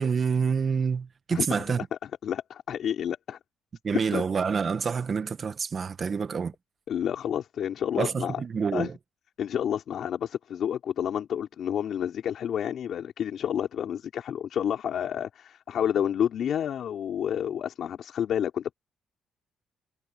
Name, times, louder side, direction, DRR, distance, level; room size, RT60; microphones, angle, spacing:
voice 1, 0.0-1.8 3.8-6.5 8.0-8.9, right 6 dB, 45° right, 1.6 m, -27 dB
voice 2, 2.0-3.4 4.1-4.2 6.9-8.4 8.7-8.9 9.4-18.7, left 9 dB, 65° left, 4.4 m, -29 dB
cardioid pair, 90°, 0 cm